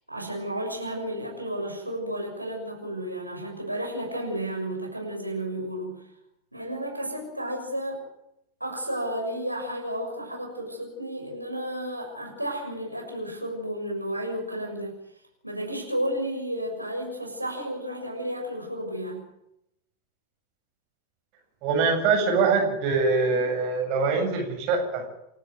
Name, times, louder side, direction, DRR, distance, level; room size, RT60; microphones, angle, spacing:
voice 1, 0.1-6.1 6.5-8.0 8.6-15.0 15.4-19.2, equal, 90° right, 0 dB, 6.6 m, -32 dB
voice 2, 21.6-25.0, right 4 dB, 40° right, 2 dB, 7.6 m, -23 dB
29.0 x 13.0 x 9.9 m, 0.83 s
figure-of-eight pair, 90°, 0 cm